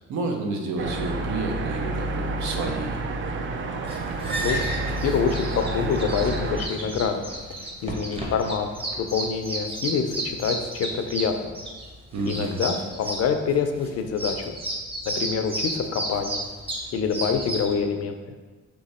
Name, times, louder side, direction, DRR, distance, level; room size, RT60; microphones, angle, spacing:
voice 1, 0.1-3.0 12.1-12.6, right 3 dB, 70° right, 2 dB, 0.7 m, -30 dB
sound 1, 0.8-6.7, right 2 dB, 40° right, 0.4 m, -29 dB
sound 2, 3.9-17.7, right 1 dB, 20° right, 0.9 m, -32 dB
voice 2, 5.0-7.2 7.6-8.7 9.0-11.5 12.2-14.5 15.1-16.4 16.9-18.2, left 6 dB, 55° left, 6 dB, 0.5 m, -26 dB
3.4 x 3.0 x 4.1 m, 1.4 s
cardioid pair, 90°, 30 cm